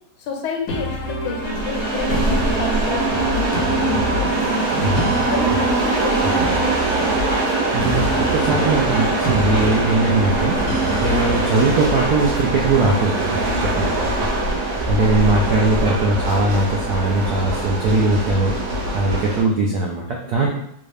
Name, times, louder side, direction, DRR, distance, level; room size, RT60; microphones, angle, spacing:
voice 1, 0.2-4.7 5.3-6.5 14.2-14.6, left 5 dB, 85° left, 2 dB, 1.5 m, -29 dB
sound 1, 0.7-12.1, equal, 65° left, 0.9 m, -28 dB
sound 2, 1.4-19.4, right 3 dB, 60° right, 1.3 m, -22 dB
sound 3, 3.1-17.9, left 4 dB, 40° right, 1.3 m, -32 dB
voice 2, 7.4-14.1 14.9-18.6 18.9-20.5, right 2 dB, 85° right, -1 dB, 0.8 m, -20 dB
3.9 x 2.3 x 3.2 m, 0.76 s
omnidirectional pair, 2.3 m